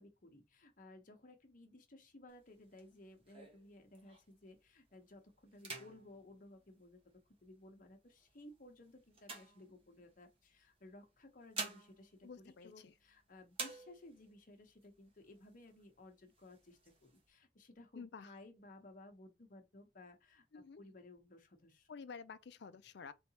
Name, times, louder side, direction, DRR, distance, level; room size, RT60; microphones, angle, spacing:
voice 1, 0.0-7.0 7.4-21.9, left 2 dB, 50° left, 1.0 m, -58 dB
sound 1, 2.3-4.5 4.9-5.2 5.5-7.4 8.1-10.3 11.1-13.2 13.5-14.4 14.8-14.9 15.2-15.9 16.3-17.2, right 3 dB, 30° right, 1.2 m, -49 dB
voice 2, 12.2-12.7 18.0-18.3 20.5-20.8 21.9-23.1, left 5 dB, 65° left, 0.4 m, -50 dB
3.9 x 3.4 x 2.8 m
head